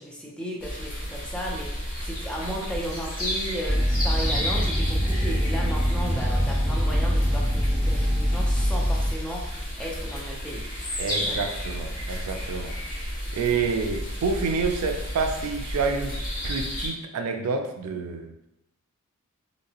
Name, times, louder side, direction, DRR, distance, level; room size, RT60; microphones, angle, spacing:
voice 1, 0.0-10.6 11.1-11.4, equal, 5° left, -3 dB, 0.5 m, -35 dB
sound 1, 0.6-16.9, equal, 40° left, 1.2 m, -32 dB
sound 2, 3.6-9.1, equal, 15° right, 0.9 m, -24 dB
voice 2, 11.0-12.8 13.3-18.3, right 4 dB, 80° right, 5 dB, 0.4 m, -28 dB
3.1 x 2.8 x 2.8 m, 0.85 s
head